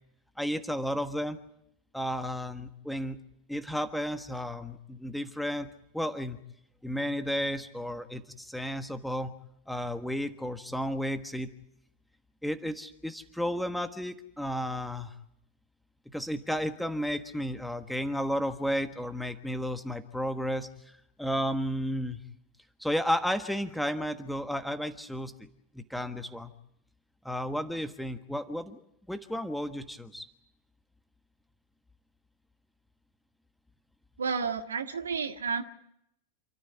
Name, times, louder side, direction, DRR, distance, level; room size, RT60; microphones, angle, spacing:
voice 1, 0.4-1.4 1.9-3.2 3.5-6.4 6.8-9.3 9.7-11.5 12.4-15.1 16.1-20.7 21.2-22.2 22.8-25.5 25.7-26.5 27.2-28.8 29.1-30.3, equal, ahead, 10 dB, 1.4 m, -33 dB
voice 2, 34.2-35.6, right 5 dB, 70° right, 8 dB, 1.7 m, -31 dB
28.0 x 13.5 x 9.4 m, 0.77 s
figure-of-eight pair, 90°, 0 cm